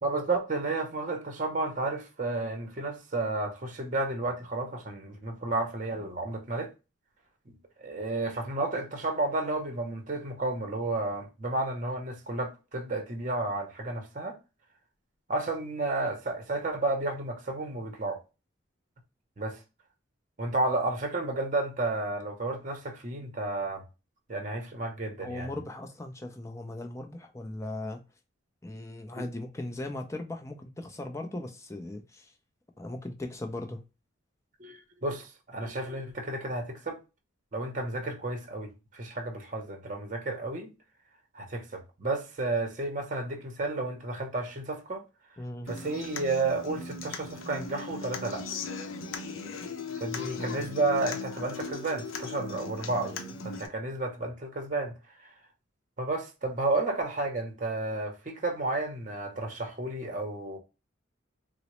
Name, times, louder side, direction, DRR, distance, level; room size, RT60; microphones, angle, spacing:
voice 1, 0.0-6.7 7.5-14.4 15.3-18.2 19.4-19.6 20.4-23.8 24.3-25.5 29.2-29.3 34.6-37.0 37.5-40.7 41.3-45.0 45.7-48.5 50.0-53.2 53.4-54.9 56.0-60.6, right 2 dB, 40° right, 0.7 m, -32 dB
voice 2, 25.2-28.0 28.6-32.3 32.8-33.8 45.4-45.7 50.2-50.7 53.1-53.3, left 1 dB, 15° left, 0.4 m, -38 dB
Human voice / Acoustic guitar, 45.7-53.7, left 4 dB, 85° left, 0.6 m, -38 dB
3.9 x 2.0 x 3.0 m
head